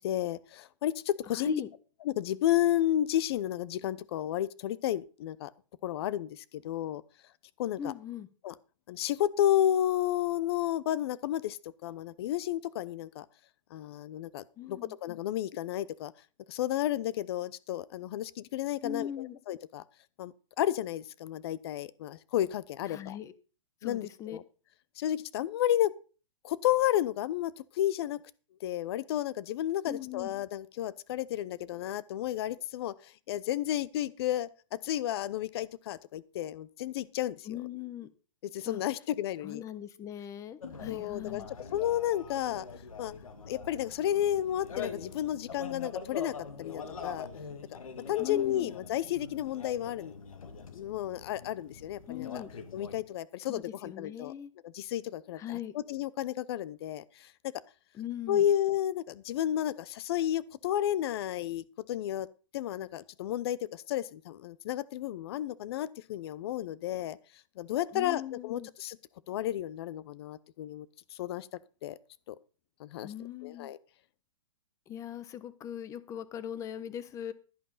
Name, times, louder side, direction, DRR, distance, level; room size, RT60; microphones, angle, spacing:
voice 1, 0.0-1.6 2.0-5.5 5.8-7.0 7.6-7.9 8.4-8.5 8.9-13.2 13.7-16.1 16.5-19.8 20.2-23.2 23.8-24.4 25.0-25.9 26.4-28.2 28.6-32.9 33.3-37.6 38.5-39.6 40.9-41.4 41.7-42.7 43.0-43.1 43.5-47.3 48.1-50.1 50.7-52.3 52.7-54.3 54.6-57.0 58.3-62.3 62.5-67.2 67.6-69.0 69.3-70.9 71.1-71.5 71.8-72.0 72.3-72.4 72.8-73.1 73.4-73.8, left 12 dB, 50° left, 20 dB, 0.8 m, -32 dB
voice 2, 1.3-1.7 7.8-8.3 14.6-14.9 18.8-19.4 22.9-23.3 23.8-24.4 29.9-30.3 37.5-38.1 38.6-38.8 39.4-41.5 48.2-48.7 52.1-52.5 53.5-54.5 55.4-55.7 57.9-58.5 67.9-68.7 73.0-73.7 74.9-77.3, left 9 dB, 20° left, 15 dB, 0.9 m, -40 dB
sound 1, 40.6-53.0, left 5 dB, 90° left, 2.3 m, -44 dB
11.5 x 11.0 x 4.1 m, 0.36 s
hypercardioid pair, 145°, 17 cm